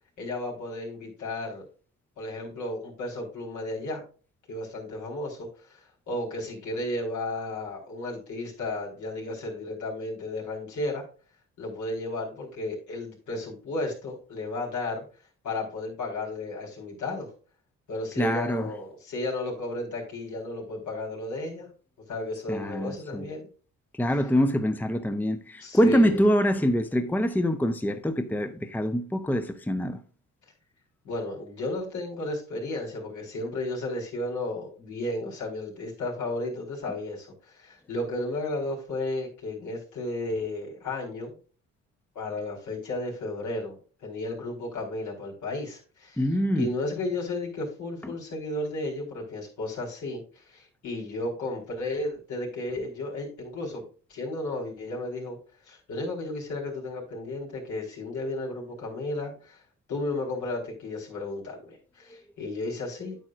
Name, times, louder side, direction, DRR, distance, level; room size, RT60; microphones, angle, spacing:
voice 1, 0.2-1.6 2.2-4.0 4.5-11.0 11.6-15.0 15.4-17.3 17.9-21.7 22.1-23.5 25.6-26.3 31.0-41.3 42.1-46.2 46.5-53.8 54.1-55.4 55.7-59.6 59.9-63.2, left 2 dB, 75° left, 4.5 m, -33 dB
voice 2, 18.2-18.7 22.5-23.3 24.0-30.0 46.2-46.7 48.0-48.1 62.1-62.2, equal, 5° left, 0.8 m, -25 dB
9.1 x 8.8 x 2.5 m
cardioid pair, 90°, 30 cm